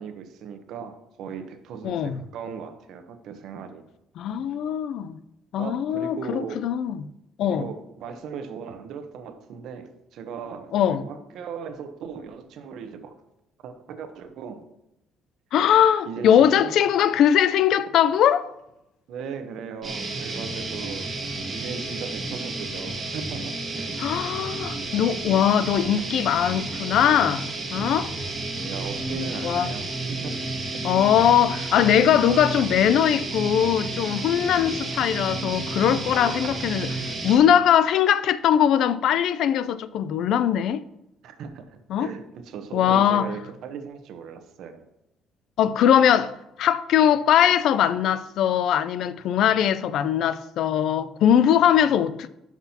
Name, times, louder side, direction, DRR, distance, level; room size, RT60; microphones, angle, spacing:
voice 1, 0.0-3.8 5.6-6.7 7.5-13.2 13.6-14.6 16.1-16.8 19.1-21.1 21.5-24.0 28.6-30.5 30.7-30.8 31.2-31.3 36.3-36.4 41.2-44.9, right 6 dB, 70° right, 0.9 m, -37 dB
voice 2, 1.8-2.2 4.2-5.2 5.5-7.0 7.4-7.7 10.7-11.0 15.5-18.5 24.0-28.1 29.4-29.7 30.8-36.9 37.2-40.8 41.9-42.1 42.7-43.3 45.6-52.3, left 9 dB, 65° left, 0.4 m, -21 dB
sound 1, 19.8-37.4, right 2 dB, 30° right, 1.8 m, -31 dB
11.5 x 6.0 x 2.8 m
cardioid pair, 130°, 0 cm